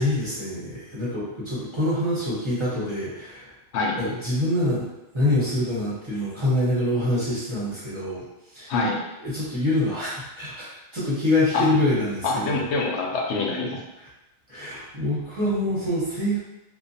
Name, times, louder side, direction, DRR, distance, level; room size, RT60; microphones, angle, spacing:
voice 1, 0.0-3.5 4.0-4.9 5.1-8.2 8.5-8.7 9.2-12.6 14.0-14.1 14.5-16.4, left 1 dB, 30° right, -9 dB, 0.8 m, -25 dB
voice 2, 12.2-13.8, left 3 dB, 85° left, -1 dB, 0.9 m, -25 dB
2.6 x 2.1 x 2.6 m, 0.94 s
omnidirectional pair, 1.1 m